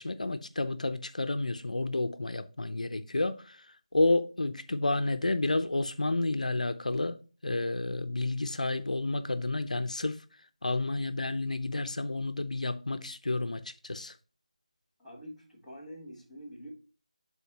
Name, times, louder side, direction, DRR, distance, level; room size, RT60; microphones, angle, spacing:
voice 1, 0.0-3.7 3.9-10.2 10.6-14.2, left 2 dB, 80° left, 0.7 m, -30 dB
voice 2, 15.0-16.7, equal, ahead, 1.7 m, -46 dB
11.5 x 4.1 x 3.0 m
figure-of-eight pair, 170°, 4 cm